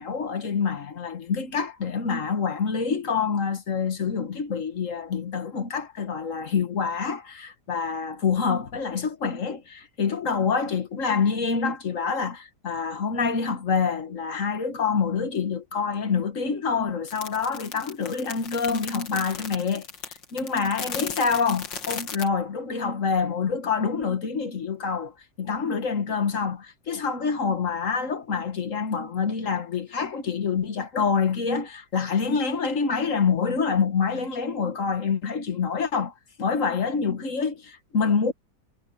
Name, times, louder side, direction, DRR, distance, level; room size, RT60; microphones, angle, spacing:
voice 1, 0.0-19.9 20.3-38.3, left 5 dB, 45° left, 1.7 m, -26 dB
sound 1, 17.1-22.3, left 6 dB, 90° left, 2.6 m, -36 dB
omnidirectional pair, 2.0 m